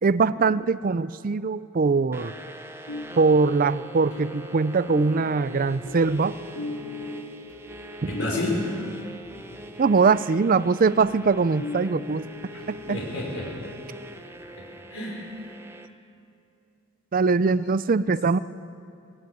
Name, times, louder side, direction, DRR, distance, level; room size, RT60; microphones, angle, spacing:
voice 1, 0.0-2.3 3.1-6.4 8.0-8.1 9.8-12.3 12.7-13.0 17.1-18.4, right 4 dB, 40° right, 16 dB, 0.4 m, -22 dB
sound 1, 2.1-15.9, right 1 dB, 10° right, 0.9 m, -42 dB
sound 2, 2.9-14.5, left 2 dB, 90° left, 1.4 m, -41 dB
voice 2, 8.1-8.6 12.5-12.6 12.9-13.5 14.9-15.5, left 1 dB, 70° left, -3 dB, 4.6 m, -30 dB
20.0 x 17.0 x 9.3 m, 2.6 s
head